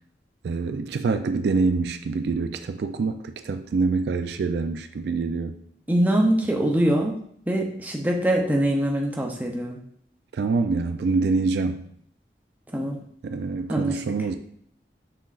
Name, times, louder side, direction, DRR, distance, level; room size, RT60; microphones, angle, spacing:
voice 1, 0.4-5.6 10.3-11.8 13.2-14.4, right 4 dB, 70° right, 9 dB, 0.3 m, -25 dB
voice 2, 5.9-7.1 7.5-9.8 12.7-13.0 13.7-14.0, right 1 dB, 10° right, 0 dB, 0.5 m, -23 dB
5.7 x 3.7 x 2.4 m, 0.66 s
head